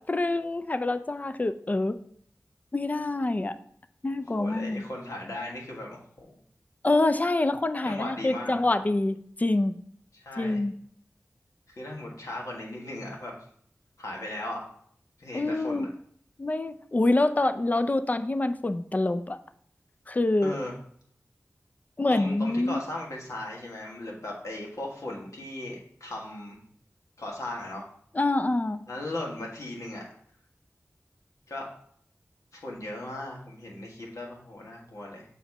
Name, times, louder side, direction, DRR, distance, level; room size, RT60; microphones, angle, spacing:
voice 1, 0.0-2.0 2.7-3.6 4.0-4.9 6.8-9.7 10.4-10.8 15.3-15.9 16.4-19.4 20.1-20.6 22.0-22.8 28.1-28.8, left 2 dB, 30° left, 11 dB, 0.4 m, -26 dB
voice 2, 4.4-6.4 7.8-8.6 10.1-10.6 11.7-13.3 14.0-14.6 15.2-15.9 20.4-20.7 22.1-26.6 27.2-27.9 28.9-30.0 31.5-31.7 32.5-35.2, left 1 dB, 85° left, -2 dB, 1.6 m, -37 dB
6.9 x 3.0 x 5.4 m, 0.62 s
wide cardioid pair, 55°, 5 cm